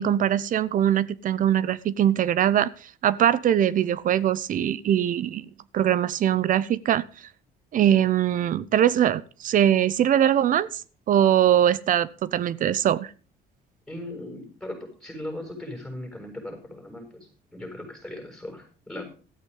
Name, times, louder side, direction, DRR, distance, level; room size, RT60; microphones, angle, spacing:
voice 1, 0.0-5.4 5.7-7.0 7.7-10.8 11.1-13.1, right 10 dB, 50° right, 0.7 m, -22 dB
voice 2, 13.9-19.0, left 1 dB, ahead, 6.8 m, -38 dB
13.5 x 8.2 x 5.5 m
cardioid pair, 110°, 17 cm